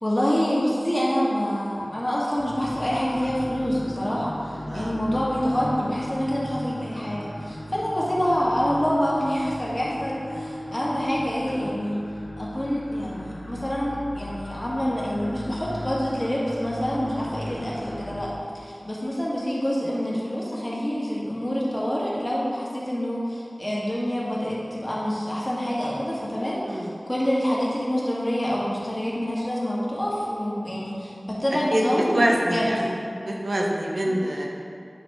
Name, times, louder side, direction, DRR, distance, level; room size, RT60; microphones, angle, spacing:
voice 1, 0.0-12.0 12.4-32.9 34.1-34.2, equal, 25° left, -6 dB, 1.6 m, -26 dB
sound 1, 2.4-18.2, left 1 dB, 65° left, 1.2 m, -37 dB
voice 2, 32.1-32.8 33.2-34.5, right 1 dB, 85° right, -1 dB, 0.9 m, -25 dB
10.0 x 4.1 x 3.6 m, 2.5 s
wide cardioid pair, 60°, 0 cm